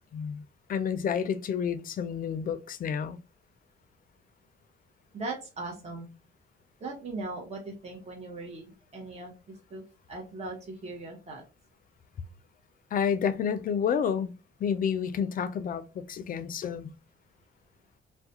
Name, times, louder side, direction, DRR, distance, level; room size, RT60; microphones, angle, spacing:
voice 1, 0.1-0.4 0.7-3.2 12.9-14.3 14.6-16.9, left 7 dB, 45° left, 0.4 m, -29 dB
voice 2, 5.1-6.1 6.8-9.8 10.1-11.4, right 2 dB, 35° right, 0.8 m, -39 dB
2.3 x 2.1 x 2.8 m
cardioid pair, 90°, 20 cm